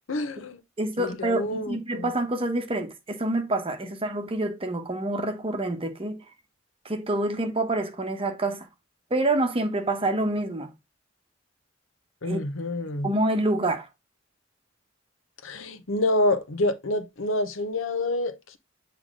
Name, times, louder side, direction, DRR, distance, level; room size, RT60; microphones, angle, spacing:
voice 1, 0.1-0.6 1.0-2.1 12.2-13.1 15.4-18.6, left 2 dB, 80° left, 0.9 m, -27 dB
voice 2, 0.8-6.2 6.8-8.7 9.1-10.7 12.2-12.4 13.0-13.9, right 2 dB, 30° right, 1.0 m, -27 dB
8.0 x 3.4 x 3.7 m
head